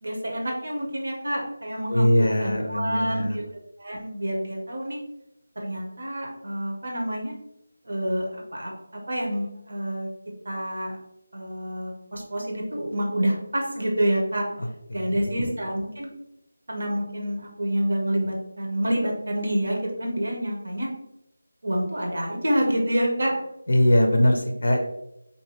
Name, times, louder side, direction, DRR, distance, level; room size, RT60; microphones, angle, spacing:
voice 1, 0.0-3.4 3.8-5.0 5.6-7.3 7.8-10.1 10.4-11.0 11.3-14.4 14.9-16.1 16.7-20.9 21.6-23.4, equal, 70° right, 0 dB, 0.7 m, -27 dB
voice 2, 1.9-3.4 14.6-15.4 23.7-24.8, left 1 dB, 70° left, 3 dB, 0.4 m, -22 dB
2.6 x 2.1 x 2.9 m, 0.82 s
figure-of-eight pair, 165°, 0 cm